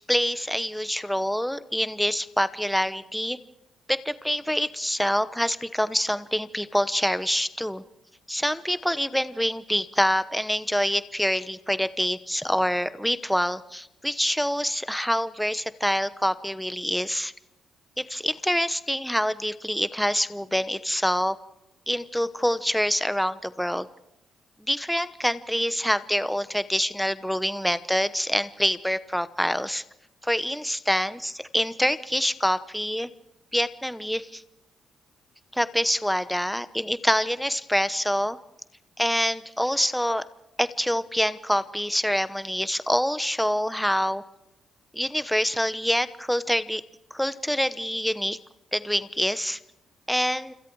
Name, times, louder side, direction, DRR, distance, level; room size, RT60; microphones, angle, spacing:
voice 1, 0.0-3.4 3.9-7.8 8.3-17.3 18.0-21.3 21.9-23.9 24.7-29.8 30.2-33.1 33.5-34.4 35.5-38.4 39.0-40.2 40.6-44.2 44.9-46.8 47.1-48.4 48.7-49.6 50.1-50.5, equal, ahead, 14 dB, 1.0 m, -26 dB
28.5 x 26.5 x 4.8 m, 0.90 s
cardioid pair, 90°, 0 cm